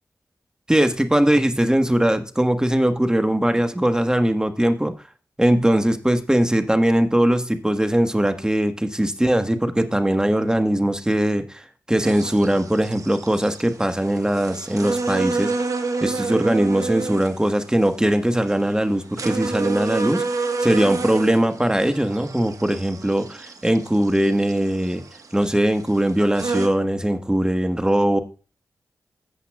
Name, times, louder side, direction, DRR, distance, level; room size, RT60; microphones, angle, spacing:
voice 1, 0.7-4.9 5.4-15.5 16.0-20.2 20.6-25.0 25.3-28.2, right 1 dB, 10° right, 8 dB, 1.3 m, -20 dB
sound 1, 12.0-26.7, right 4 dB, 65° right, 1.3 m, -30 dB
14.0 x 8.0 x 2.3 m, 0.34 s
cardioid pair, 45°, 6 cm